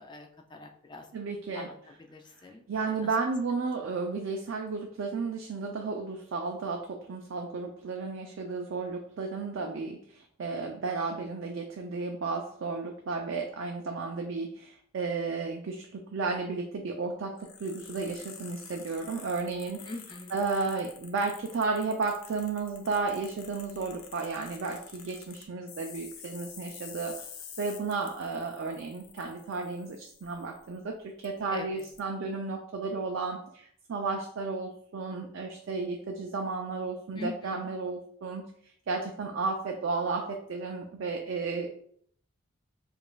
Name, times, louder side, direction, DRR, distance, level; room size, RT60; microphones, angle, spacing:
voice 1, 0.0-1.1 1.5-1.7 2.1-3.1 19.8-20.4 31.5-31.9 37.1-37.7, left 2 dB, 20° left, 3 dB, 0.3 m, -43 dB
voice 2, 1.1-1.7 2.7-19.9 20.3-27.2 27.6-41.7, right 4 dB, 60° right, 2 dB, 0.4 m, -33 dB
sound 1, 17.4-30.8 31.2-31.3 31.8-32.0, left 7 dB, 80° left, 0.6 m, -49 dB
5.0 x 2.4 x 2.2 m, 0.64 s
head